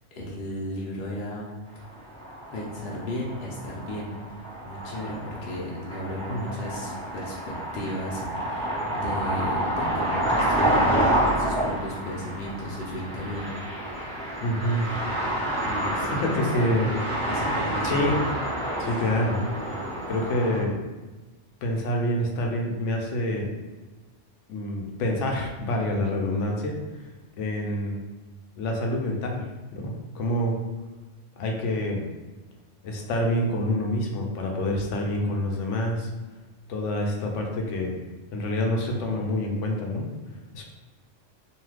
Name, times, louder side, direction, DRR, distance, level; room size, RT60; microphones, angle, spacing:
voice 1, 0.2-1.6 2.5-4.1 4.6-13.5 15.6-16.7 17.2-17.9, left 1 dB, 60° left, -4 dB, 0.8 m, -35 dB
sound 1, 1.8-20.6, right 1 dB, 5° left, 1.0 m, -29 dB
voice 2, 14.4-14.9 16.2-16.9 17.8-18.2 18.8-19.4 20.1-20.8 21.6-23.5 24.5-26.8 27.4-28.0 28.6-29.4 29.7-30.5 31.4-32.1 32.8-36.1 36.7-38.0 38.3-40.1 40.5-40.6, left 1 dB, 80° left, 1 dB, 0.9 m, -27 dB
3.2 x 2.7 x 2.3 m, 1.2 s
omnidirectional pair, 1.3 m